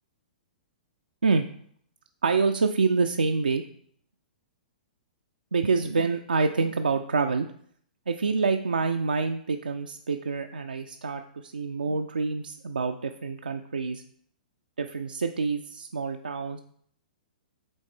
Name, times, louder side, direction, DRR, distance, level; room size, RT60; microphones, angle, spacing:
voice 1, 2.2-3.6 5.5-7.5 8.1-14.0 14.8-16.6, right 4 dB, 75° right, 5 dB, 0.4 m, -27 dB
7.9 x 3.7 x 3.6 m, 0.63 s
figure-of-eight pair, 110°, 5 cm